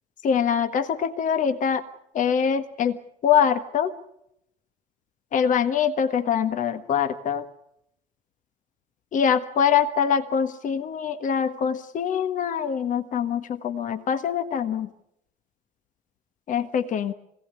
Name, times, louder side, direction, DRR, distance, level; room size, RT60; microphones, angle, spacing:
voice 1, 0.2-1.8 2.1-3.0 3.2-3.9 5.3-7.4 9.1-14.9 16.5-17.1, left 7 dB, 45° left, 10 dB, 1.5 m, -24 dB
25.5 x 17.5 x 9.7 m, 0.80 s
figure-of-eight pair, 55°, 18 cm